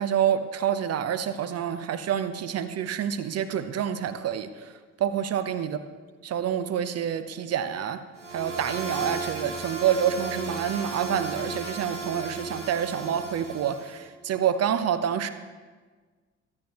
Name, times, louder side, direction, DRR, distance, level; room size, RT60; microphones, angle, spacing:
voice 1, 0.0-4.7 5.0-5.8 6.2-8.0 8.3-15.3, right 9 dB, 45° right, 11 dB, 0.9 m, -27 dB
sound 1, 8.2-14.0, right 3 dB, 90° right, 1.1 m, -35 dB
24.0 x 8.7 x 3.1 m, 1.4 s
figure-of-eight pair, 45°, 35 cm